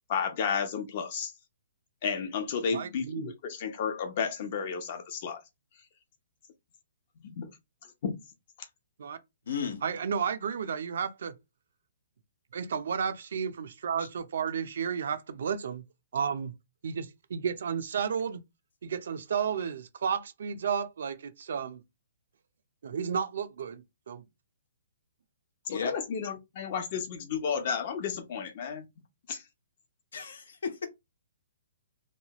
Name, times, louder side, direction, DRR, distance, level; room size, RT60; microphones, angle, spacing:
voice 1, 0.1-1.3 2.0-5.4 7.2-7.5 8.0-8.1 25.7-28.9 29.3-29.4, left 6 dB, 45° left, 0.8 m, -32 dB
voice 2, 2.7-3.3 9.0-9.2 9.8-11.3 12.5-15.8 16.1-16.5 16.8-18.4 18.8-21.8 22.8-24.2, right 7 dB, 70° right, 0.5 m, -32 dB
voice 3, 9.5-9.8 25.7-25.9 30.1-30.9, left 6 dB, 75° left, 0.8 m, -34 dB
3.1 x 2.3 x 2.9 m
hypercardioid pair, 150°, 0 cm